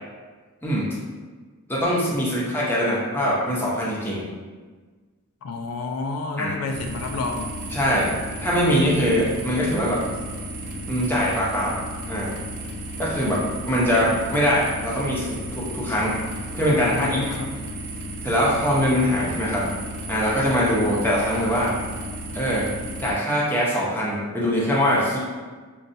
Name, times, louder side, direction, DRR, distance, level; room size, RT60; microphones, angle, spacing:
voice 1, 1.7-4.2 6.4-6.5 7.7-8.1 8.4-10.0 10.9-11.8 12.1-12.3 13.0-16.2 16.5-17.2 18.2-19.7 20.1-21.7 22.3-22.7 23.0-25.2, equal, 10° left, -6 dB, 0.7 m, -22 dB
voice 2, 5.4-7.5 16.9-17.6, left 3 dB, 70° left, 3 dB, 0.3 m, -30 dB
sound 1, 6.7-23.1, right 1 dB, 85° right, 0.6 m, -34 dB
5.3 x 2.3 x 2.6 m, 1.4 s
head